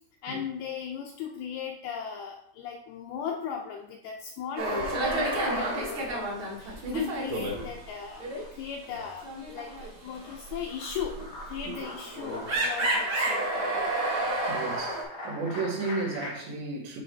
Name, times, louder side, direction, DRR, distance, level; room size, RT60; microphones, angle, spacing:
voice 1, 0.2-11.2 11.5-13.9, left 7 dB, 85° left, 1 dB, 2.2 m, -38 dB
sound 1, 4.6-7.9 8.2-8.4 8.8-15.0, right 1 dB, 55° right, 1.4 m, -30 dB
sound 2, 6.6-7.2 7.5-16.3, left 1 dB, 60° left, 1.0 m, -43 dB
voice 2, 14.5-17.0, right 3 dB, 75° right, -2 dB, 3.6 m, -33 dB
9.4 x 3.3 x 4.6 m, 0.73 s
omnidirectional pair, 5.1 m